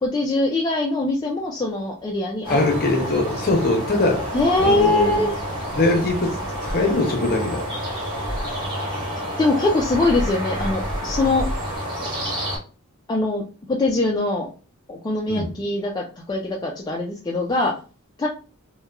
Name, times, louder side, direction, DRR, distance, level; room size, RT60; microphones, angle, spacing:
voice 1, 0.0-2.6 3.2-3.3 4.3-5.4 9.4-11.5 13.1-13.4 13.7-14.5 14.9-17.7 18.2-18.3, left 2 dB, 20° left, 0.3 m, -22 dB
sound 1, 2.4-12.6, equal, 25° right, 1.3 m, -29 dB
voice 2, 2.5-4.3 4.6-5.3 5.7-7.6 15.3-15.5, left 2 dB, 45° left, 0.7 m, -22 dB
2.9 x 2.2 x 2.3 m
head